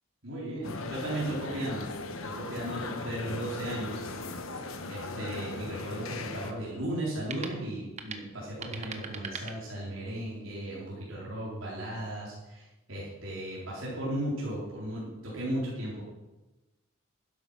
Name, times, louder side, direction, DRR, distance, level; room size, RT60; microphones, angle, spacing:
voice 1, 0.2-1.9 2.2-4.0 4.8-16.0, right 1 dB, 75° right, -6 dB, 4.0 m, -36 dB
sound 1, 0.6-6.5, left 3 dB, 85° left, 1.3 m, -38 dB
sound 2, 6.6-10.2, right 5 dB, 35° right, 1.1 m, -45 dB
12.0 x 10.5 x 5.6 m, 1.1 s
head